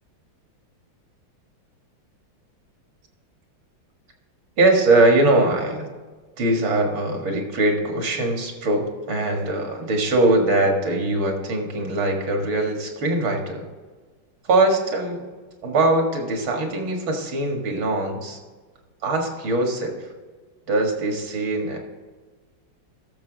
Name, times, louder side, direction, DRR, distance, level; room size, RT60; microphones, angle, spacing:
voice 1, 4.6-5.9 6.4-13.7 14.4-15.3 15.6-18.4 19.0-20.1 20.7-21.8, right 2 dB, 70° right, 2 dB, 2.6 m, -21 dB
13.0 x 6.9 x 3.9 m, 1.4 s
omnidirectional pair, 2.3 m